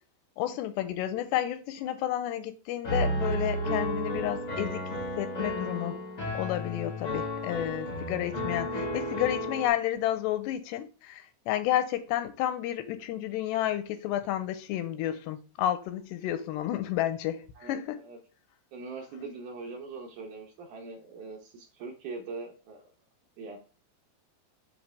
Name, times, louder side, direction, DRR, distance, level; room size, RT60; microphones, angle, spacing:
voice 1, 0.4-4.8 5.2-6.0 6.3-18.0, left 12 dB, 85° left, 2.8 m, -31 dB
Piano, 2.8-9.7, equal, 65° left, 0.8 m, -32 dB
voice 2, 17.6-18.2 18.7-22.9 23.4-23.6, right 4 dB, 75° right, 1.8 m, -42 dB
8.0 x 4.0 x 3.3 m
omnidirectional pair, 4.9 m